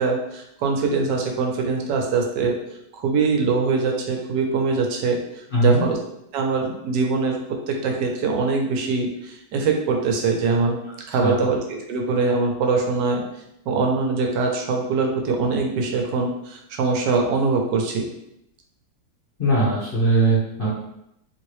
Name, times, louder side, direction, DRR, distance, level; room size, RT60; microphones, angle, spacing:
voice 1, 0.0-2.6 2.9-6.0 6.3-10.8 11.1-13.2 13.7-18.1, right 4 dB, 85° right, 2 dB, 1.2 m, -23 dB
voice 2, 5.5-5.8 11.2-11.4 19.4-20.7, right 2 dB, 45° left, -9 dB, 0.8 m, -20 dB
3.0 x 2.7 x 3.0 m, 0.80 s
omnidirectional pair, 1.8 m